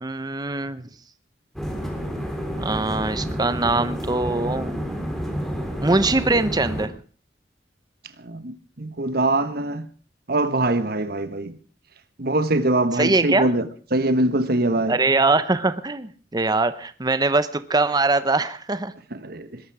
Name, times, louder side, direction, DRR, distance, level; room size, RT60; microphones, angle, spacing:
voice 1, 0.0-0.9 2.6-4.7 5.8-6.9 12.9-13.5 14.9-18.9, right 3 dB, 20° right, 0.8 m, -22 dB
sound 1, 1.6-6.9, equal, ahead, 3.5 m, -29 dB
voice 2, 8.2-9.8 10.3-11.5 12.2-13.7 13.9-15.0 19.1-19.6, right 2 dB, 55° right, 1.3 m, -23 dB
21.0 x 12.0 x 4.9 m
head